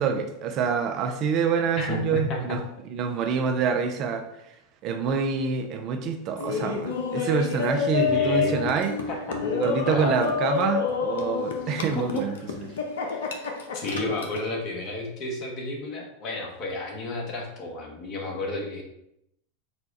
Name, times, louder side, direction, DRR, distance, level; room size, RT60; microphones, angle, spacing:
voice 1, 0.0-2.6 2.9-4.3 4.8-9.0 9.5-12.3 14.0-14.1, right 6 dB, 45° right, 6 dB, 0.5 m, -26 dB
voice 2, 1.8-2.6 8.0-8.7 9.1-9.4 9.9-10.2 11.7-12.2 13.7-18.8, left 2 dB, 45° left, 0 dB, 1.1 m, -32 dB
Laughter, 6.4-14.5, left 6 dB, 70° left, 0.6 m, -28 dB
4.2 x 2.2 x 4.1 m, 0.80 s
figure-of-eight pair, 90°, 0 cm